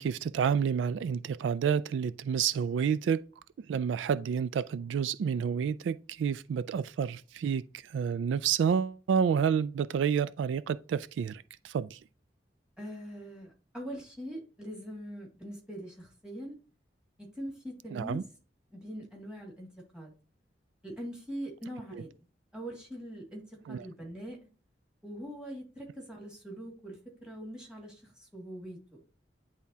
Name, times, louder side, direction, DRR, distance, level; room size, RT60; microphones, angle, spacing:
voice 1, 0.0-3.2 3.7-7.6 7.9-12.0 17.9-18.2 21.9-22.0 23.7-23.8, right 7 dB, 90° right, 0.3 m, -29 dB
voice 2, 12.8-16.6 17.3-18.2 18.7-19.7 19.9-20.1 20.8-22.1 22.5-24.4 25.0-29.0, equal, 5° right, 2.0 m, -42 dB
10.0 x 3.5 x 2.8 m
head